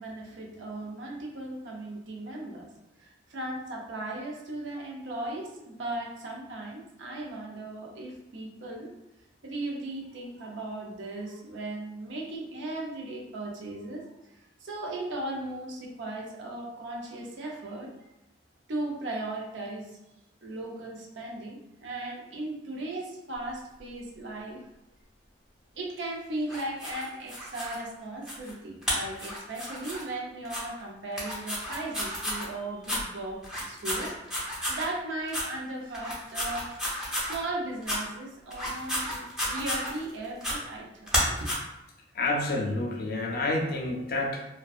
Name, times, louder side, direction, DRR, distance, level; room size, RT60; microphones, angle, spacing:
voice 1, 0.0-2.7 3.0-8.9 9.4-14.0 14.6-17.9 18.7-20.0 20.4-24.6 25.7-36.7 37.0-41.5, right 2 dB, 85° right, -1 dB, 0.5 m, -37 dB
sound 1, 26.5-27.8 28.3-28.5 28.8-30.0 30.4-30.6 31.1-32.5 32.8-33.0 33.4-34.9 35.3-35.5 35.9-37.4 37.8-38.0 38.5-40.1 40.4-40.6 41.1-41.5, equal, 5° right, 0.6 m, -32 dB
voice 2, 42.1-44.5, left 2 dB, 55° left, 1 dB, 0.4 m, -29 dB
2.6 x 2.2 x 2.3 m, 0.91 s
head